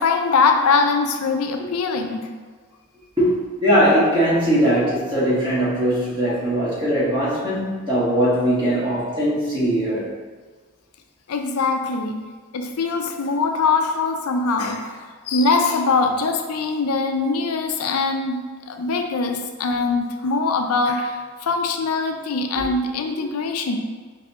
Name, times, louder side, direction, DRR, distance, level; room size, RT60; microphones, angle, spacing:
voice 1, 0.0-2.3 6.3-6.4 11.3-12.2 12.5-23.8, left 4 dB, 85° left, 4 dB, 0.4 m, -22 dB
voice 2, 3.6-10.1 22.5-22.6, equal, 20° right, -8 dB, 1.2 m, -20 dB
4.8 x 2.7 x 3.5 m, 1.5 s
head